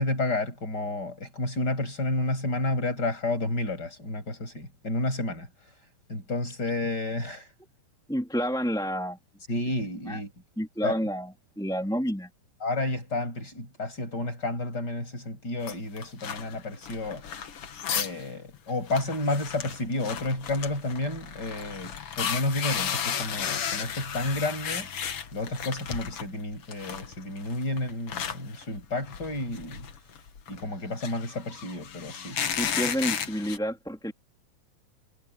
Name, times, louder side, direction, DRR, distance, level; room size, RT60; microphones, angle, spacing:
voice 1, 0.0-5.5 6.1-7.5 9.5-10.3 10.8-11.0 12.6-17.2 17.9-24.9 25.3-29.9 30.5-32.4, left 2 dB, 25° left, 8.7 m, -31 dB
voice 2, 8.1-9.2 10.0-10.2 10.6-12.3 32.6-34.1, equal, ahead, 3.3 m, -29 dB
sound 1, 15.6-18.2 18.5-18.6 18.9-26.3 26.6-33.6, left 8 dB, 50° left, 1.9 m, -34 dB
omnidirectional pair, 4.1 m